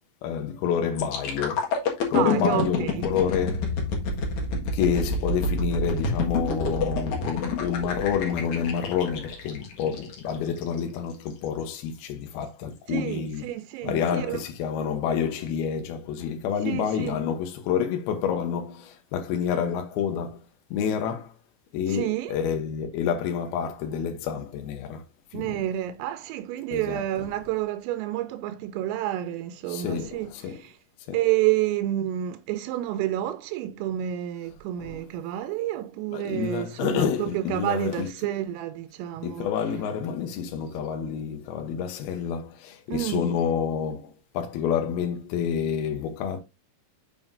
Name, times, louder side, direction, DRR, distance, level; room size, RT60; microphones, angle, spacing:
voice 1, 0.2-1.7 2.1-3.7 4.5-13.5 13.8-20.4 20.7-21.3 21.7-25.0 25.3-25.6 26.7-27.0 29.7-30.6 31.1-31.2 34.8-35.0 36.1-38.1 39.2-46.4, left 7 dB, 80° left, 2.2 m, -28 dB
sound 1, 1.0-10.8 11.3-11.5, left 3 dB, 60° left, 2.0 m, -28 dB
voice 2, 2.1-3.1 12.9-14.4 16.6-17.2 21.9-22.4 25.3-30.3 30.5-30.8 31.1-39.5 42.9-43.4, right 13 dB, 90° right, 3.3 m, -29 dB
7.6 x 7.3 x 2.6 m
omnidirectional pair, 5.8 m